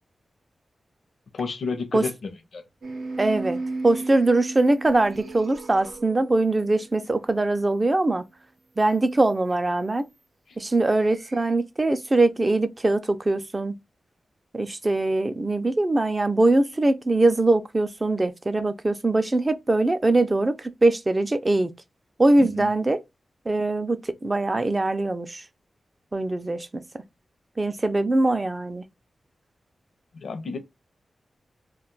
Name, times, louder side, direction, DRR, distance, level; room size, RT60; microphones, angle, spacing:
voice 1, 1.3-2.6 22.4-22.7 30.1-30.6, left 4 dB, 75° left, 0.6 m, -31 dB
sound 1, 2.8-7.3 11.0-11.5, right 3 dB, 80° right, 0.6 m, -35 dB
voice 2, 3.2-3.6 3.8-8.2 8.8-10.0 10.6-13.8 14.5-21.7 22.2-23.0 23.5-25.4 26.1-26.8 27.6-28.9, right 2 dB, 25° right, 0.4 m, -22 dB
2.4 x 2.2 x 3.8 m
wide cardioid pair, 120°, 0 cm